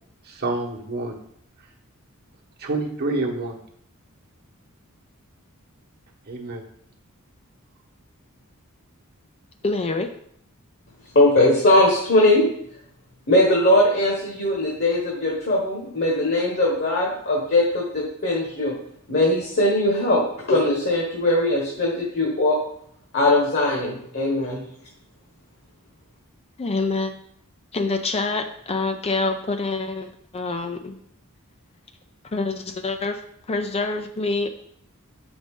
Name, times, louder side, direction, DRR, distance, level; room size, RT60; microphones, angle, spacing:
voice 1, 0.2-1.2 2.6-3.6 6.3-6.6, right 2 dB, 45° right, 0 dB, 1.2 m, -27 dB
voice 2, 9.6-10.1 26.6-27.1 27.7-31.0 32.2-34.5, left 3 dB, 30° left, 7 dB, 0.4 m, -26 dB
voice 3, 11.1-12.5 13.3-18.7 19.1-20.2 20.5-22.6 23.1-24.6, left 1 dB, 50° left, -2 dB, 1.4 m, -20 dB
7.1 x 5.2 x 3.7 m, 0.69 s
head